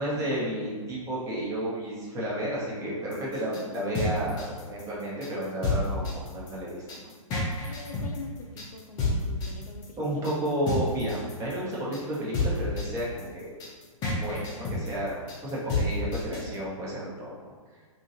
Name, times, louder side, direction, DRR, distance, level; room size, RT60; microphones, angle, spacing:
voice 1, 0.0-7.1 10.0-13.5 14.1-17.5, right 1 dB, 15° right, -6 dB, 0.8 m, -32 dB
sound 1, 3.1-16.5, left 2 dB, 20° left, 0.6 m, -30 dB
voice 2, 7.7-10.2, left 3 dB, 85° left, 3 dB, 0.4 m, -44 dB
2.8 x 2.7 x 2.6 m, 1.5 s
figure-of-eight pair, 120°, 18 cm